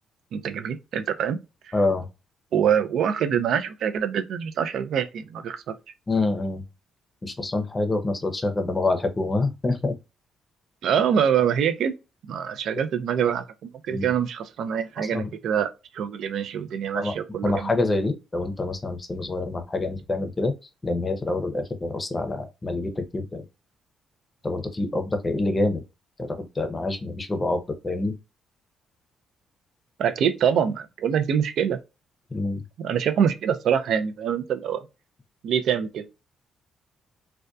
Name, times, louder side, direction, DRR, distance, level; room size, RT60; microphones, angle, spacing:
voice 1, 0.3-1.4 1.7-1.8 2.5-5.7 10.8-11.9 12.3-13.4 13.9-15.7 15.9-17.7 30.0-31.8 32.8-34.8 35.4-36.0, right 8 dB, 70° right, 0.3 m, -25 dB
voice 2, 1.7-2.1 6.1-6.6 7.2-10.0 13.9-14.0 15.0-15.3 16.9-17.1 17.4-20.5 20.8-23.4 24.4-25.8 26.2-28.1 32.3-32.6, left 2 dB, 25° left, 0.6 m, -26 dB
2.6 x 2.1 x 2.2 m
cardioid pair, 90°, 0 cm